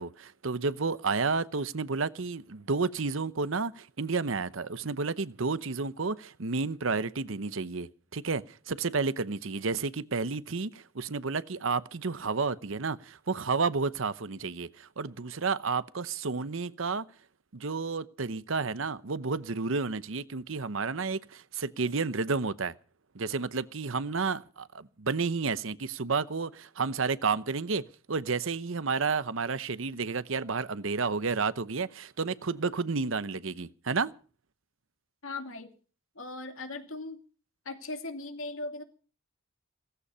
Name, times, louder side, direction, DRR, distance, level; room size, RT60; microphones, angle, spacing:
voice 1, 0.0-17.1 17.5-22.7 23.1-34.1, right 4 dB, 70° right, 0.8 m, -31 dB
voice 2, 35.2-35.7 36.2-37.2 37.7-38.8, left 2 dB, 70° left, 2.5 m, -38 dB
17.0 x 15.0 x 5.6 m
head